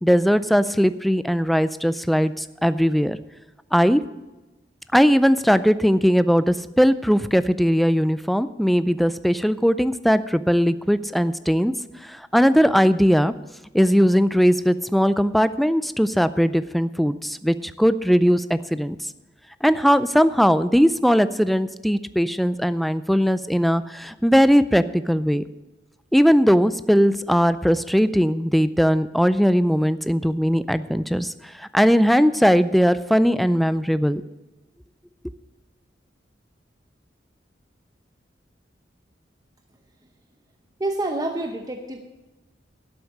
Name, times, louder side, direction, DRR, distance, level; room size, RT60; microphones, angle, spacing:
voice 1, 0.0-3.2 3.7-4.0 4.9-11.7 12.1-13.3 13.7-19.0 19.6-25.4 26.1-31.3 31.6-34.2, equal, ahead, 14 dB, 0.4 m, -19 dB
voice 2, 40.8-42.0, right 2 dB, 20° right, 4 dB, 0.8 m, -27 dB
12.0 x 8.1 x 6.5 m, 1.1 s
head